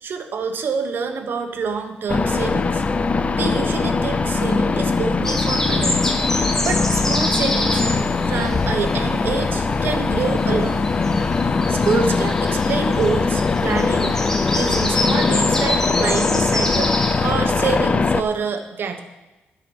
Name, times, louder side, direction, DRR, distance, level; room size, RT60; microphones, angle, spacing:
voice 1, 0.0-2.8 3.3-6.1 6.6-7.8 8.3-10.8 11.7-14.2 14.5-16.9 17.2-19.0, right 5 dB, 60° right, 6 dB, 1.2 m, -26 dB
sound 1, 2.1-18.2, left 4 dB, 30° left, 0.5 m, -21 dB
sound 2, 5.2-9.6 9.8-17.3, left 1 dB, 10° left, 1.2 m, -27 dB
10.5 x 4.8 x 7.0 m, 1.1 s
cardioid pair, 105°, 4 cm